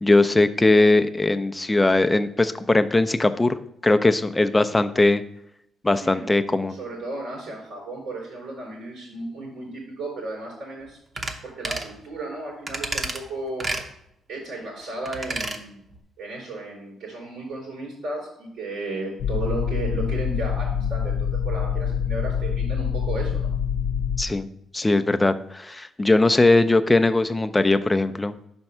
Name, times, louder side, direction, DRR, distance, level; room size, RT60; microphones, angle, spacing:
voice 1, 0.0-3.6 3.8-5.2 5.8-6.8 24.2-24.5 24.7-28.5, left 2 dB, 15° left, 9 dB, 0.4 m, -20 dB
voice 2, 6.0-11.0 11.4-13.7 14.3-15.8 16.2-23.5, right 2 dB, 85° right, -7 dB, 3.0 m, -34 dB
sound 1, 11.2-11.4 11.6-11.9 12.7-13.2 13.6-13.9 15.1-15.6 15.9-16.0, right 2 dB, 35° right, 0.8 m, -29 dB
sound 2, 19.2-24.2, left 7 dB, 80° left, 0.3 m, -25 dB
5.3 x 4.3 x 6.0 m, 0.78 s
cardioid pair, 90°, 0 cm